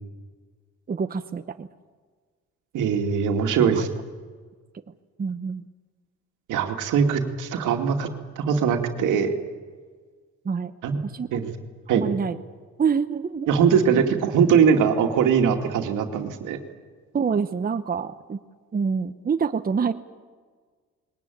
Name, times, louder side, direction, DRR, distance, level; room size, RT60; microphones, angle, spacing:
voice 1, 0.9-1.7 3.6-3.9 5.2-5.6 10.4-10.7 11.0-11.4 11.9-12.4 12.8-13.5 17.1-18.4 18.7-19.9, right 6 dB, 30° right, 9 dB, 0.9 m, -26 dB
voice 2, 2.7-3.9 6.5-8.1 8.4-9.3 10.8-11.0 11.3-11.5 11.9-12.0 13.5-16.6, right 7 dB, 85° right, 4 dB, 2.4 m, -21 dB
21.0 x 19.0 x 9.3 m, 1.5 s
cardioid pair, 90°, 30 cm